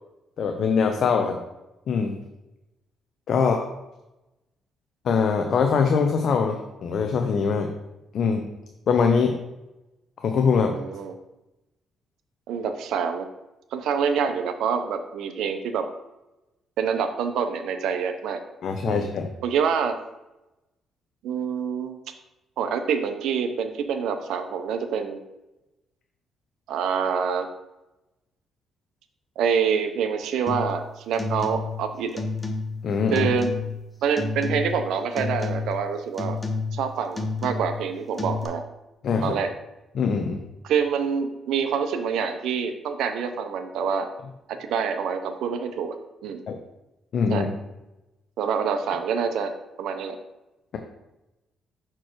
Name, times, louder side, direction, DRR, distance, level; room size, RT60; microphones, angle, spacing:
voice 1, 0.4-1.4 1.9-2.2 3.3-3.7 5.0-7.7 8.1-8.5 8.9-9.4 10.2-10.8 18.6-19.3 32.8-33.3 39.0-39.4 39.9-40.4 46.5-46.6 47.1-47.5, left 5 dB, 60° left, 4 dB, 0.6 m, -22 dB
voice 2, 10.6-11.1 12.5-13.3 13.7-15.9 16.8-18.4 18.9-19.0 19.4-20.0 21.2-22.0 22.6-25.2 26.7-27.5 29.4-32.2 33.1-33.5 34.0-36.4 36.7-38.6 39.2-39.5 40.6-44.1 44.5-46.0 46.2-46.4 47.3-47.5 48.4-50.2, right 6 dB, 80° right, 7 dB, 0.7 m, -26 dB
sound 1, 30.5-30.8 31.1-31.8 32.1-32.8 33.2-33.8 34.2-34.9 35.2-35.8 36.2-36.8 37.1-37.8 38.2-38.5, left 3 dB, 15° left, 0.9 m, -30 dB
6.1 x 4.5 x 4.6 m, 0.97 s
cardioid pair, 90°, 0 cm